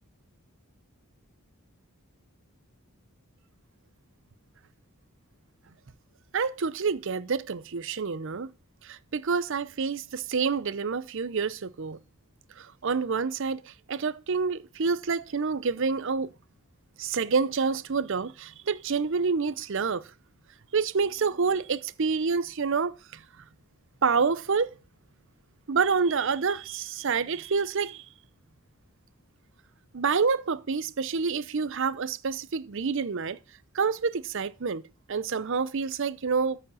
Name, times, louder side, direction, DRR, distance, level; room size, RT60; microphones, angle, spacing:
voice 1, 6.3-8.5 8.9-12.0 12.8-13.6 13.9-16.3 17.0-20.0 20.7-22.9 24.0-24.7 25.7-28.0 29.9-33.4 33.7-34.8 35.1-36.6, right 5 dB, 55° right, 0.6 m, -27 dB
13.5 x 4.9 x 5.6 m
head